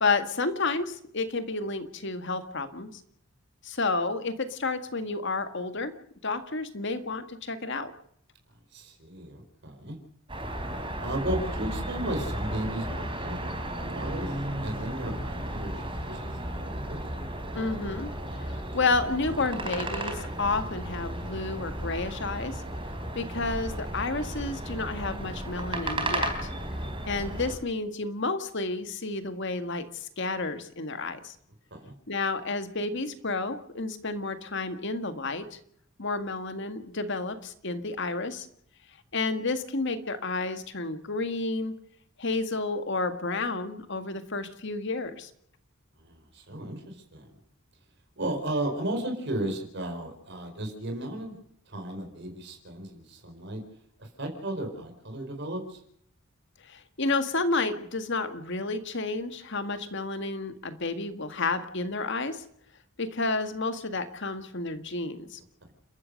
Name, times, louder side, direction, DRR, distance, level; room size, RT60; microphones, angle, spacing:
voice 1, 0.0-2.9 3.6-5.9 6.2-7.9 17.5-18.1 18.4-22.6 23.1-26.5 27.0-31.3 32.1-35.6 36.0-38.5 39.1-41.7 42.2-45.3 56.7-62.4 63.0-65.4, left 3 dB, 55° left, 9 dB, 1.9 m, -31 dB
voice 2, 8.7-10.0 11.0-14.3 14.6-17.0 31.7-31.9 46.0-47.3 48.2-51.3 51.7-53.6 54.0-55.8, right 1 dB, 55° right, 4 dB, 4.6 m, -35 dB
sound 1, 10.3-27.6, right 1 dB, 25° right, 3.8 m, -34 dB
29.5 x 13.5 x 6.5 m, 0.69 s
head